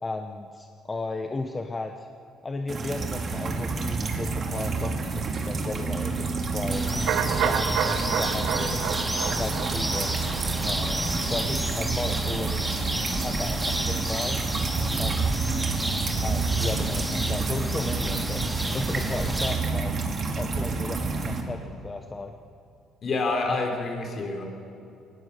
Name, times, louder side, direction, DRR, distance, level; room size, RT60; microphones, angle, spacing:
voice 1, 0.0-2.1 2.4-6.9 7.3-8.8 9.3-10.1 10.4-12.7 13.2-14.4 15.0-15.4 16.2-18.4 18.7-19.9 20.4-22.3, left 3 dB, 20° left, 5 dB, 0.9 m, -35 dB
sound 1, 2.7-21.4, right 4 dB, 40° right, 2.4 m, -29 dB
sound 2, 6.7-19.6, right 1 dB, 5° right, 2.2 m, -32 dB
sound 3, 7.1-12.9 13.2-13.3, right 8 dB, 70° right, 1.3 m, -31 dB
voice 2, 23.0-24.4, left 3 dB, 45° left, 3 dB, 3.8 m, -27 dB
22.5 x 18.5 x 6.8 m, 2.7 s
cardioid pair, 115°, 0 cm